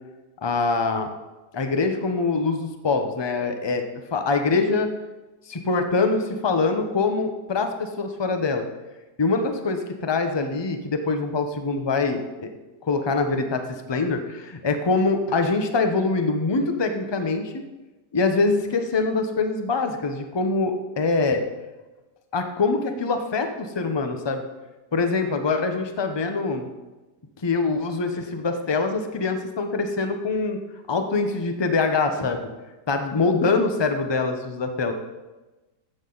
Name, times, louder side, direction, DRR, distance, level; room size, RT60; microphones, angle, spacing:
voice 1, 0.4-1.1 1.5-3.8 4.1-4.9 5.5-8.7 9.2-12.5 12.8-17.5 18.1-21.4 22.3-24.4 24.9-26.7 27.4-30.6 30.9-32.5 32.9-34.9, left 3 dB, 30° left, 6 dB, 0.4 m, -24 dB
14.0 x 7.7 x 3.9 m, 1.1 s
omnidirectional pair, 1.8 m